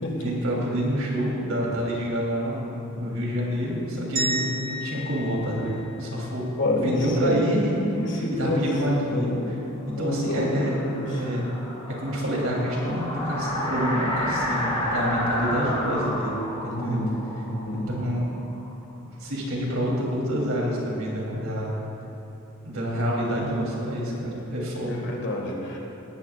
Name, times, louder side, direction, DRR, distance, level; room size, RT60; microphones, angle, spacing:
voice 1, 0.2-6.5 6.8-9.3 10.0-10.8 11.0-11.4 12.0-16.3 16.6-17.0 17.9-18.3 19.2-21.8 22.6-25.0, equal, 75° right, -3 dB, 3.2 m, -27 dB
sound 1, 4.2-6.4, right 1 dB, 40° right, 1.6 m, -32 dB
voice 2, 6.6-7.4 8.0-8.6 9.1-9.6 9.9-11.3 16.7-17.1 17.5-17.9 24.8-25.8, left 1 dB, 55° left, 0 dB, 1.9 m, -28 dB
sound 2, 9.9-18.7, left 1 dB, 25° left, 2.5 m, -31 dB
17.5 x 14.0 x 2.4 m, 3.0 s
head